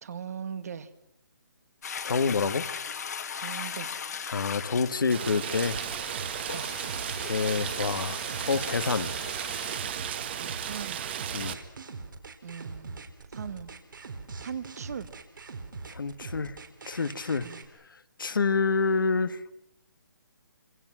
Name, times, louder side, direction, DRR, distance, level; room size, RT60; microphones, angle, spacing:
voice 1, 0.0-0.9 3.3-3.9 6.5-6.8 10.2-11.0 12.4-13.7 14.4-15.1 17.3-17.6, right 7 dB, 50° right, 13 dB, 1.7 m, -40 dB
Toilet flush, 1.8-9.8, left 7 dB, 50° left, 1.8 m, -39 dB
voice 2, 2.0-2.7 4.3-5.8 7.2-8.2 8.5-9.1 11.3-11.6 15.9-16.6 16.9-17.5 18.2-19.5, left 4 dB, 75° left, 12 dB, 1.5 m, -27 dB
Rain, 5.1-11.5, right 9 dB, 30° right, 1.6 m, -34 dB
sound 1, 6.1-17.7, right 4 dB, 70° right, 4.0 m, -42 dB
26.5 x 25.5 x 6.2 m, 0.79 s
hypercardioid pair, 165°, 11 cm